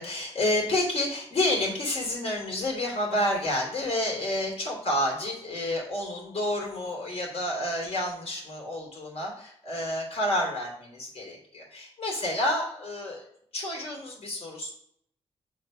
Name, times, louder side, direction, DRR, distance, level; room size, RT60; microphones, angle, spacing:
voice 1, 0.0-13.2 13.5-14.7, left 1 dB, 75° left, -2 dB, 2.9 m, -29 dB
6.6 x 3.9 x 5.1 m, 0.68 s
wide cardioid pair, 125°, 11 cm